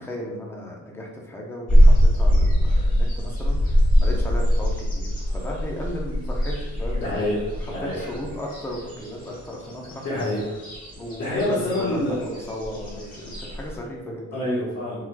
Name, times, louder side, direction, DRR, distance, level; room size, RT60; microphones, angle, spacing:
voice 1, 0.0-7.3 7.6-10.1 11.0-14.5, equal, 10° left, -2 dB, 0.7 m, -35 dB
sound 1, 1.7-13.8, equal, 30° left, 1.5 m, -22 dB
voice 2, 7.0-7.9 10.0-10.6 11.2-12.2 14.3-15.0, left 1 dB, 60° left, -11 dB, 1.5 m, -26 dB
3.7 x 3.0 x 2.3 m, 1.0 s
cardioid pair, 90°, 30 cm